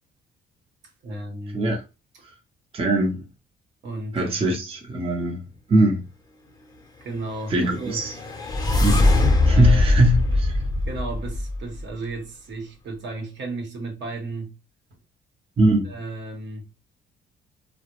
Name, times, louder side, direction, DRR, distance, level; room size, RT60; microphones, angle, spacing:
voice 1, 1.0-1.7 3.8-4.6 6.5-6.6 7.0-8.0 9.4-10.0 10.8-14.5 15.8-16.6, right 2 dB, 65° right, 0.9 m, -34 dB
voice 2, 2.7-3.3 4.1-6.0 7.5-8.1 8.8-9.0 9.5-10.6 15.6-15.9, right 1 dB, 30° right, 0.6 m, -21 dB
sound 1, 7.6-11.8, left 2 dB, 20° left, 0.6 m, -21 dB
2.2 x 2.0 x 2.9 m
cardioid pair, 90°, 20 cm